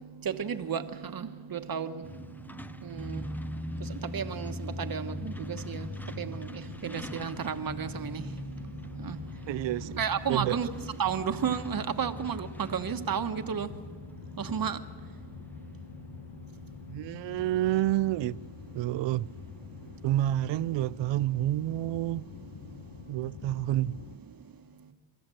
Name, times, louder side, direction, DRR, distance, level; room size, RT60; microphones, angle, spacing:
voice 1, 0.2-2.0 2.8-3.2 4.1-5.8 6.2-8.2 9.0-9.2 10.0-10.7 11.0-13.7 14.4-14.8, right 7 dB, 45° right, 1.3 m, -32 dB
Truck, 2.0-20.5, left 1 dB, 5° left, 0.5 m, -43 dB
sound 1, 5.1-24.2, left 8 dB, 65° left, 1.1 m, -47 dB
voice 2, 9.5-10.0 10.3-10.6 16.9-18.4 18.7-19.3 20.0-22.2 23.1-24.0, right 14 dB, 65° right, 0.5 m, -29 dB
28.5 x 13.5 x 7.7 m
cardioid pair, 100°, 47 cm